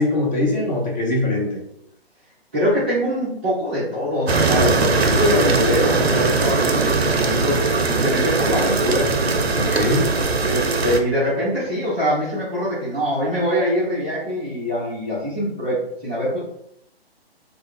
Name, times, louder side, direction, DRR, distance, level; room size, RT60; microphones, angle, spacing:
voice 1, 0.0-1.6 9.5-10.1, left 2 dB, 45° left, -2 dB, 1.0 m, -22 dB
voice 2, 2.5-9.1 10.4-16.4, equal, 10° right, -12 dB, 0.4 m, -23 dB
sound 1, 4.3-11.0, right 3 dB, 85° right, 0.5 m, -20 dB
2.3 x 2.2 x 3.6 m, 0.73 s
figure-of-eight pair, 130°, 31 cm